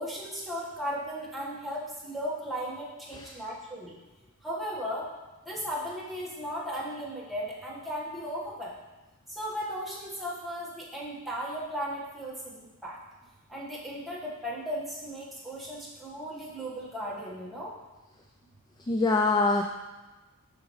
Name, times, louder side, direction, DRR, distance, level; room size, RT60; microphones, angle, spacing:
voice 1, 0.0-3.9 4.4-5.0 5.4-8.7 9.3-13.0 13.5-17.7, equal, ahead, -7 dB, 1.5 m, -36 dB
voice 2, 18.8-19.6, left 3 dB, 20° left, 3 dB, 0.3 m, -24 dB
7.4 x 5.9 x 3.2 m, 1.1 s
head